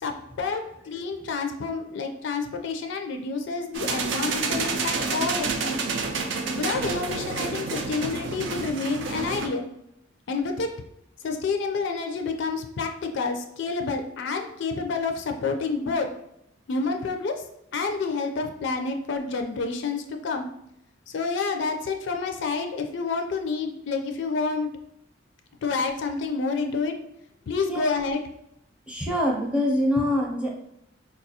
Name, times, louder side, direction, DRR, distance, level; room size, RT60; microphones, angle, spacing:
voice 1, 0.0-5.8 6.5-9.7 10.3-10.7 11.2-16.1 16.7-17.4 17.7-20.5 21.1-24.7 25.6-26.9 27.5-28.2, left 4 dB, 65° left, 5 dB, 0.4 m, -29 dB
sound 1, 3.7-9.5, right 4 dB, 65° right, 0.4 m, -29 dB
voice 2, 28.9-30.5, left 1 dB, 5° right, -2 dB, 0.6 m, -24 dB
4.2 x 2.3 x 2.7 m, 0.78 s
head